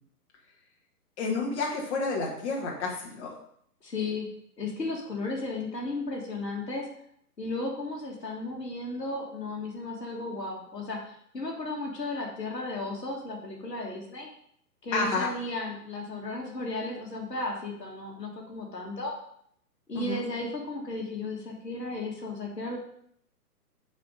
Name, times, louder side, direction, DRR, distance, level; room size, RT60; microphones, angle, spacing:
voice 1, 1.2-3.3 14.9-15.3 20.0-20.2, left 3 dB, 45° left, -2 dB, 1.9 m, -30 dB
voice 2, 3.8-4.3 4.6-6.9 7.4-14.3 14.8-19.1 19.9-22.8, left 2 dB, 85° left, 0 dB, 1.7 m, -34 dB
6.2 x 4.2 x 5.1 m, 0.67 s
figure-of-eight pair, 125°, 48 cm